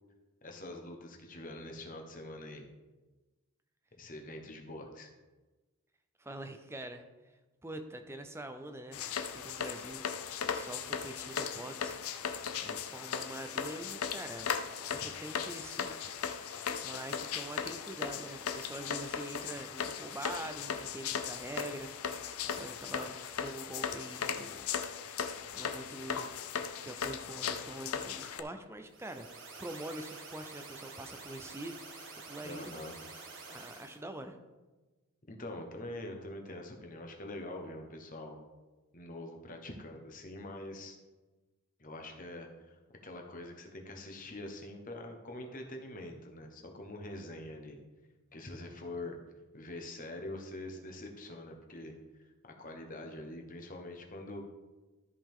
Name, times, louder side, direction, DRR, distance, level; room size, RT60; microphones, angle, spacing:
voice 1, 0.4-2.7 3.9-5.1 32.4-32.9 35.3-38.4 38.9-41.0 41.8-47.8 48.3-49.2 49.5-54.4, left 1 dB, 35° left, 3 dB, 1.1 m, -44 dB
voice 2, 6.2-7.0 7.6-10.0 10.4-12.2 12.6-14.5 14.9-16.2 16.8-24.7 25.5-29.3 29.6-31.8 32.3-32.7 33.5-34.4, right 1 dB, 10° right, 7 dB, 0.5 m, -45 dB
sound 1, 8.9-28.4, left 7 dB, 75° left, 0.6 m, -37 dB
sound 2, 28.9-34.0, right 3 dB, 55° right, 1.6 m, -48 dB
13.0 x 5.3 x 3.7 m, 1.2 s
head